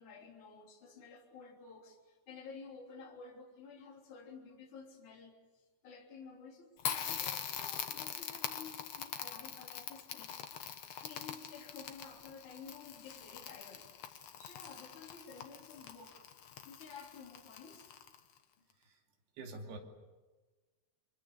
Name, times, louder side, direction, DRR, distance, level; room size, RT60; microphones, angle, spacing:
voice 1, 0.0-5.4 5.8-10.4 11.0-13.8 14.4-16.2 16.6-17.9, left 5 dB, 50° left, 0 dB, 4.5 m, -52 dB
Crackle, 6.8-18.4, left 9 dB, 75° left, 1.4 m, -43 dB
voice 2, 19.3-19.8, right 2 dB, 75° right, 2 dB, 4.7 m, -46 dB
29.5 x 24.0 x 6.8 m, 1.2 s
omnidirectional pair, 4.8 m